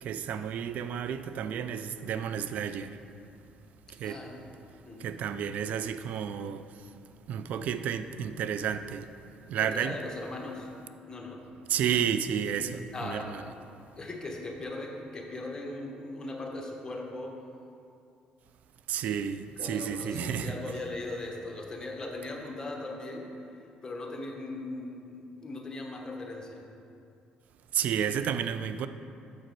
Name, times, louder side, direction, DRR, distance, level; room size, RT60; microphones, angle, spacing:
voice 1, 0.0-3.0 3.9-4.2 5.0-6.9 7.3-9.1 9.5-10.0 11.7-13.4 18.9-20.6 27.7-28.9, right 8 dB, 65° right, 0.3 m, -31 dB
voice 2, 4.0-4.4 4.8-5.1 9.7-10.7 11.1-11.4 12.9-13.6 13.9-17.4 19.6-23.4 23.8-26.7, left 2 dB, 25° left, 1.0 m, -39 dB
7.0 x 4.8 x 4.5 m
cardioid pair, 90°, 3 cm